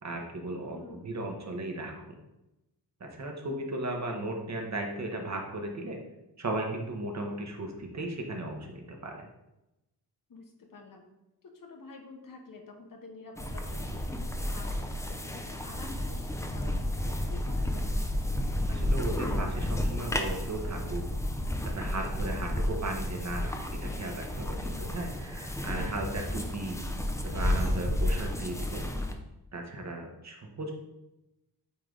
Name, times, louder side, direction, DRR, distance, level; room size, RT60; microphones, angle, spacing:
voice 1, 0.0-2.2 3.0-6.0 6.4-9.3 18.7-21.0 21.7-26.8 27.3-28.9 29.5-30.7, right 2 dB, 40° right, 2 dB, 1.1 m, -36 dB
voice 2, 0.7-1.0 10.3-11.1 11.4-17.9 22.3-22.6, left 3 dB, 55° left, 2 dB, 1.1 m, -49 dB
sound 1, 13.4-29.1, left 1 dB, 5° left, 0.5 m, -32 dB
8.4 x 3.3 x 3.8 m, 0.94 s
wide cardioid pair, 125°, 41 cm